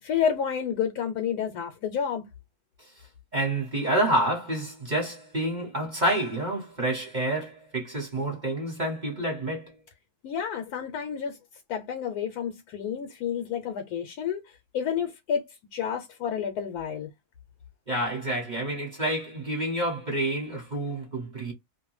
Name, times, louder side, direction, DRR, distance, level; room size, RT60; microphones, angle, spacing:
voice 1, 0.0-2.3 10.2-11.4 11.7-17.1, left 8 dB, 80° left, 1.1 m, -30 dB
voice 2, 3.3-9.7 17.9-21.5, right 1 dB, 35° right, 1.0 m, -28 dB
2.5 x 2.2 x 3.1 m
omnidirectional pair, 1.7 m